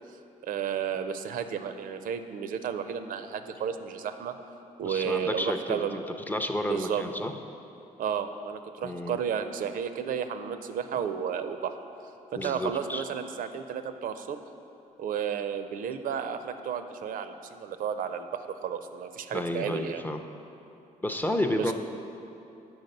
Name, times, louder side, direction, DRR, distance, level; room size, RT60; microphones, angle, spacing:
voice 1, 0.4-4.3 4.8-6.0 6.6-7.0 8.0-11.8 12.3-14.4 15.0-20.0 21.5-21.7, right 7 dB, 70° right, 9 dB, 0.4 m, -32 dB
voice 2, 4.8-7.3 8.8-9.2 12.3-13.0 19.3-20.2 21.0-21.7, left 1 dB, 10° left, 5 dB, 0.4 m, -31 dB
7.8 x 4.7 x 5.3 m, 2.8 s
cardioid pair, 105°, 15 cm